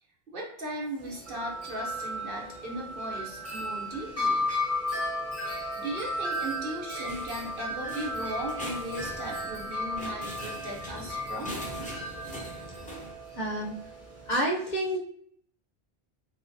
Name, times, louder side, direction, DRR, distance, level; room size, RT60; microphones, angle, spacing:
voice 1, 0.3-4.4 5.4-11.5, right 1 dB, 55° right, -2 dB, 1.0 m, -37 dB
Wind chime, 1.0-14.3, left 1 dB, 15° right, 1.1 m, -34 dB
sound 1, 7.1-13.1, equal, 10° left, 0.6 m, -42 dB
voice 2, 13.4-13.8 14.3-15.0, right 1 dB, 45° left, -2 dB, 0.8 m, -28 dB
3.6 x 3.2 x 2.6 m, 0.65 s
omnidirectional pair, 1.1 m